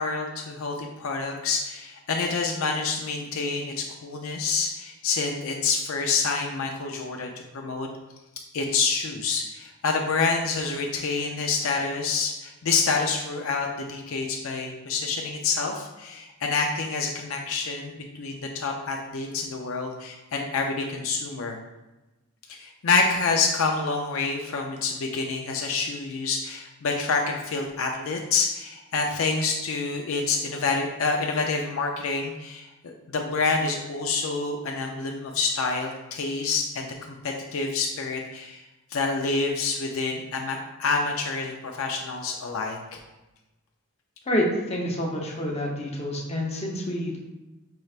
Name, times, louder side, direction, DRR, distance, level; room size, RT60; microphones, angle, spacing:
voice 1, 0.0-7.9 8.5-21.6 22.5-38.6 38.9-43.0, left 4 dB, 75° left, 2 dB, 0.5 m, -27 dB
voice 2, 44.3-47.2, equal, 30° left, -2 dB, 0.8 m, -28 dB
5.4 x 3.2 x 2.4 m, 1.0 s
head